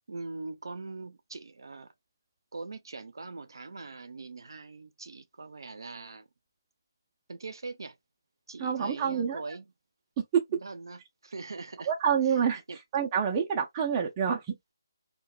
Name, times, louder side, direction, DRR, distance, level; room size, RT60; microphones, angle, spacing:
voice 1, 0.1-1.9 2.5-6.3 7.3-8.0 8.5-9.7 10.5-11.9 12.7-12.8, right 3 dB, 75° right, 0.4 m, -42 dB
voice 2, 8.6-9.4 10.2-10.4 11.9-12.6 12.9-14.6, right 7 dB, 15° right, 0.4 m, -27 dB
2.1 x 2.0 x 3.0 m
hypercardioid pair, 170°, 2 cm